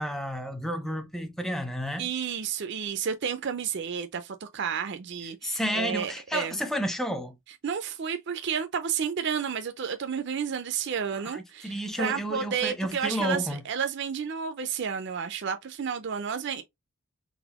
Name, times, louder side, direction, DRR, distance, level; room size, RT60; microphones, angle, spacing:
voice 1, 0.0-2.1 5.4-7.4 11.1-13.6, equal, ahead, 0.5 m, -31 dB
voice 2, 2.0-6.6 7.6-16.6, right 7 dB, 50° right, 0.4 m, -31 dB
4.1 x 4.0 x 2.9 m
head